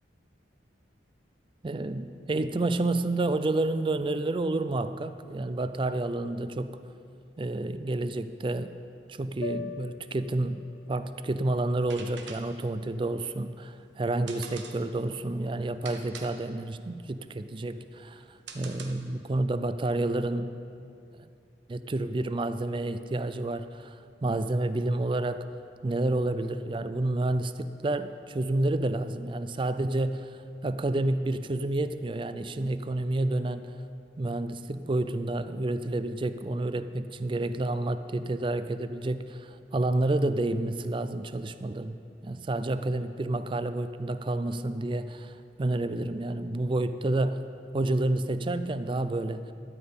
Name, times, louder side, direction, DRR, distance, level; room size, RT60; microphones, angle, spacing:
voice 1, 1.6-6.7 7.4-8.7 9.1-10.6 10.9-18.2 18.5-20.5 21.7-24.0 24.2-25.5 25.8-30.2 30.6-33.7 34.2-47.4 47.7-49.5, right 2 dB, 25° right, 12 dB, 0.4 m, -29 dB
sound 1, 9.4-13.7, left 5 dB, 60° left, 0.3 m, -45 dB
sound 2, 11.7-19.3, right 5 dB, 75° right, 1.1 m, -47 dB
13.0 x 5.4 x 8.7 m, 2.5 s
head